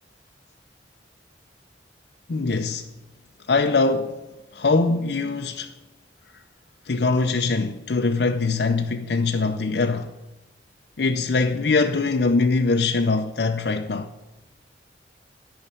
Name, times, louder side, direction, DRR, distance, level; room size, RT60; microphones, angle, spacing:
voice 1, 2.3-2.9 3.5-4.2 4.5-5.7 6.9-10.1 11.0-14.1, left 3 dB, 65° left, 0.5 m, -22 dB
8.8 x 5.5 x 7.9 m
head